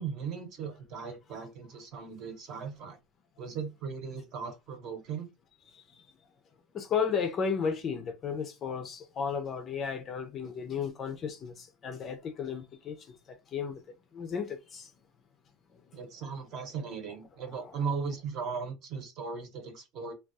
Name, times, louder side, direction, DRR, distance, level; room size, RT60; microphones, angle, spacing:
voice 1, 0.0-3.0 3.4-5.3 15.9-20.1, right 5 dB, 40° right, 0.9 m, -37 dB
voice 2, 6.7-13.0 13.5-13.8 14.1-14.9, left 6 dB, 25° left, 0.5 m, -33 dB
3.4 x 2.3 x 2.6 m
cardioid pair, 175°, 0 cm